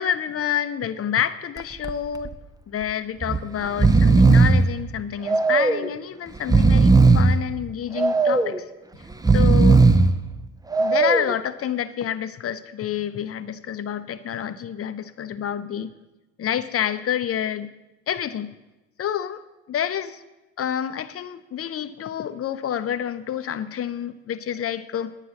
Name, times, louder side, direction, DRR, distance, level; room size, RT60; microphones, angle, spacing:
voice 1, 0.0-2.3 2.7-8.6 9.3-9.8 10.8-15.9 16.4-17.7 18.1-18.5 19.0-19.4 19.7-20.2 20.6-25.1, left 9 dB, 35° left, 13 dB, 0.8 m, -28 dB
Breathing, 1.6-1.9 2.2-2.3 3.2-3.4 3.7-4.7 5.3-5.9 6.4-7.4 8.0-8.6 9.1-10.1 10.7-11.3, right 3 dB, 10° right, 0.7 m, -16 dB
10.0 x 9.5 x 5.9 m, 1.0 s
hypercardioid pair, 60°, 39 cm